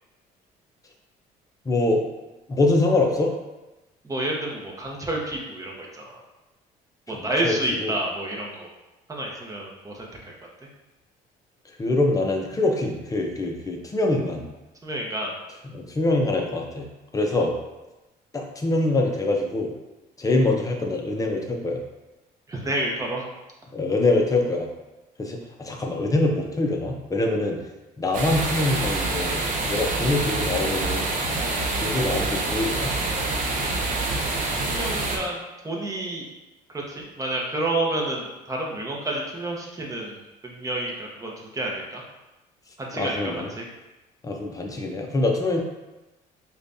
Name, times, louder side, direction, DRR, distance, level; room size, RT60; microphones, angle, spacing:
voice 1, 1.7-2.0 2.5-3.3 7.1-7.5 7.8-8.0 11.8-14.5 15.6-16.9 17.1-17.5 18.3-19.7 20.2-21.8 23.7-24.7 25.2-27.6 28.0-29.4 29.7-31.1 31.7-32.9 42.9-43.5 44.2-45.6, left 2 dB, 20° left, 1 dB, 0.6 m, -24 dB
voice 2, 4.0-6.2 7.1-8.7 9.1-10.3 14.8-15.3 22.5-23.3 34.6-36.2 36.7-40.2 40.4-42.0 42.8-43.2 43.5-43.6, right 1 dB, 20° right, -1 dB, 0.8 m, -29 dB
sound 1, 28.1-35.2, right 2 dB, 50° right, 0.7 m, -26 dB
5.0 x 2.3 x 2.6 m, 1.0 s
cardioid pair, 110°, 17 cm